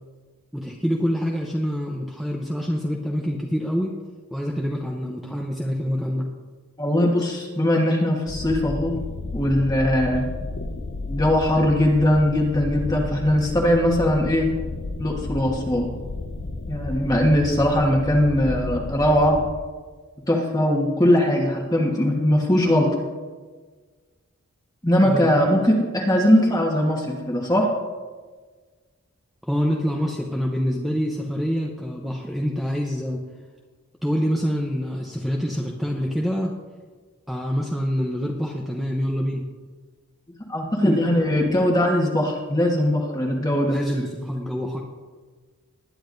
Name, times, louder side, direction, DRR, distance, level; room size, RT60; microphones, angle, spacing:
voice 1, 0.5-3.9 4.3-6.3 25.0-25.3 29.4-33.2 34.0-36.5 37.3-39.4 40.8-41.0 43.7-44.8, equal, ahead, -1 dB, 0.7 m, -26 dB
voice 2, 6.8-8.9 9.3-10.2 11.1-14.5 15.0-15.9 16.7-19.4 20.3-22.9 24.8-27.7 40.5-43.8, left 1 dB, 15° left, -1 dB, 1.3 m, -20 dB
sound 1, 8.3-19.5, left 3 dB, 60° left, 0.8 m, -32 dB
20.0 x 10.0 x 2.6 m, 1.4 s
head